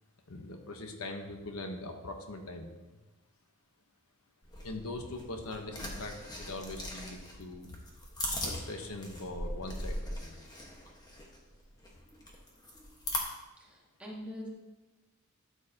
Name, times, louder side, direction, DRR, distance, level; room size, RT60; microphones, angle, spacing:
voice 1, 0.3-3.0 4.6-7.7 8.4-10.4, left 2 dB, 75° left, 4 dB, 1.1 m, -41 dB
sound 1, 4.4-13.2, left 1 dB, 20° left, 1.4 m, -40 dB
voice 2, 13.6-14.5, equal, 5° right, -3 dB, 1.6 m, -44 dB
13.0 x 7.4 x 2.9 m, 1.1 s
head